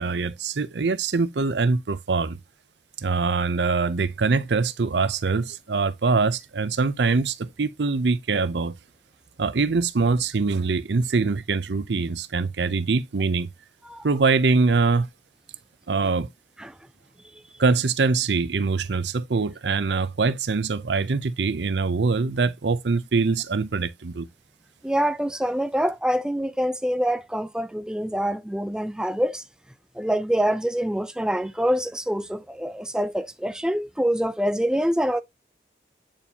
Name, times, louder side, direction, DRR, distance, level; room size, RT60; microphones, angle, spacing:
voice 1, 0.0-2.4 3.0-8.7 9.4-13.5 14.0-15.1 15.9-16.3 17.6-24.3, right 4 dB, 85° right, 0.6 m, -23 dB
voice 2, 24.8-29.4 30.0-35.2, equal, 5° right, 0.4 m, -25 dB
8.9 x 4.3 x 2.8 m
head